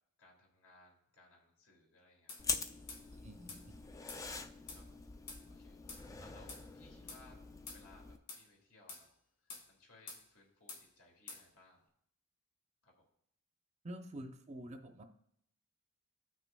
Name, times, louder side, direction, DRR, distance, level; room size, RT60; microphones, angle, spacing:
voice 1, 0.2-2.4 4.7-5.0 5.5-7.4 7.7-9.1 9.4-11.9 12.8-13.0, left 2 dB, 65° left, 0 dB, 2.1 m, -63 dB
sound 1, 2.3-2.4 2.9-3.0 3.5-3.6 4.1-4.2 4.7-4.8 5.3-5.4 5.9-6.0 6.5-6.6 7.1-7.2 7.7-7.8 8.3-8.4 8.9-9.0 9.5-9.7 10.1-10.2 10.7-10.8 11.3-11.4, left 4 dB, 90° left, 1.8 m, -48 dB
sound 2, 2.4-8.2, left 4 dB, 15° left, 0.3 m, -44 dB
voice 2, 3.1-3.8 13.8-15.0, right 1 dB, 30° right, 5 dB, 0.6 m, -48 dB
15.0 x 6.0 x 2.2 m, 0.70 s
head